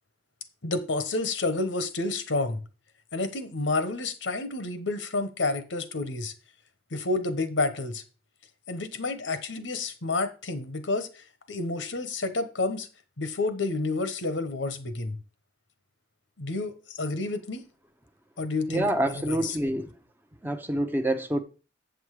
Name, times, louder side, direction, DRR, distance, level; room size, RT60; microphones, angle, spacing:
voice 1, 0.6-2.6 3.1-6.3 6.9-8.0 8.7-12.9 13.2-15.2 16.4-17.7 18.4-19.6, left 3 dB, 80° left, 1.1 m, -30 dB
voice 2, 18.7-19.9 20.4-21.4, right 1 dB, 10° right, 0.7 m, -27 dB
8.3 x 6.3 x 4.8 m
head